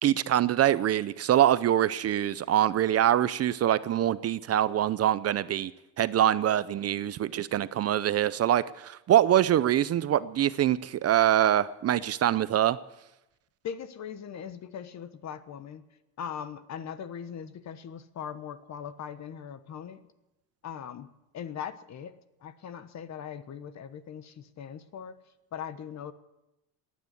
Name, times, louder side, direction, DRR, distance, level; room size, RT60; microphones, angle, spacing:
voice 1, 0.0-5.7 6.0-12.8, right 11 dB, 40° right, 0.5 m, -24 dB
voice 2, 13.6-15.9 16.2-20.0 20.6-22.2 22.4-25.1 25.5-26.1, left 8 dB, 45° left, 1.1 m, -40 dB
18.0 x 9.5 x 8.3 m
cardioid pair, 115°, 39 cm